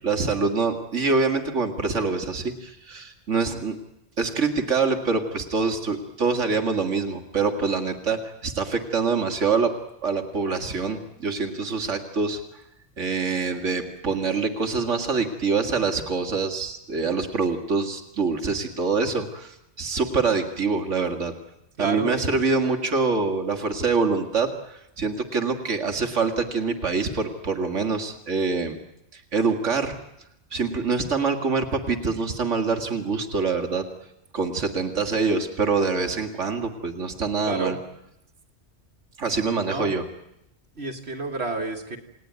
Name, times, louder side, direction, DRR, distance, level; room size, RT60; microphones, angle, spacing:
voice 1, 0.0-3.7 4.2-9.7 10.0-12.6 13.0-21.3 21.8-28.8 29.1-30.0 30.5-33.8 34.3-37.8 39.2-40.0, right 4 dB, 80° right, 4 dB, 2.2 m, -25 dB
voice 2, 21.8-22.4 37.4-37.8 39.6-39.9 40.8-42.0, right 3 dB, 60° right, 4 dB, 2.2 m, -30 dB
29.0 x 18.5 x 9.4 m, 0.84 s
omnidirectional pair, 1.2 m